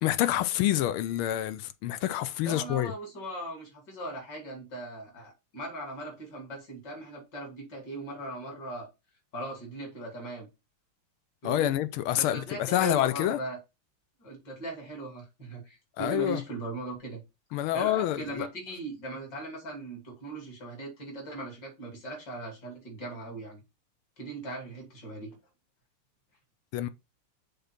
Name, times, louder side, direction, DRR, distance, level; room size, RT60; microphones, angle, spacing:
voice 1, 0.0-2.9 11.4-13.4 16.0-16.4 17.5-18.5 26.7-26.9, left 13 dB, 85° left, 1.5 m, -27 dB
voice 2, 2.4-8.9 9.3-10.5 11.4-11.7 12.1-13.6 14.2-17.2 17.7-23.6 24.2-25.3, right 2 dB, 50° left, 3.3 m, -39 dB
6.9 x 3.7 x 5.8 m
omnidirectional pair, 2.4 m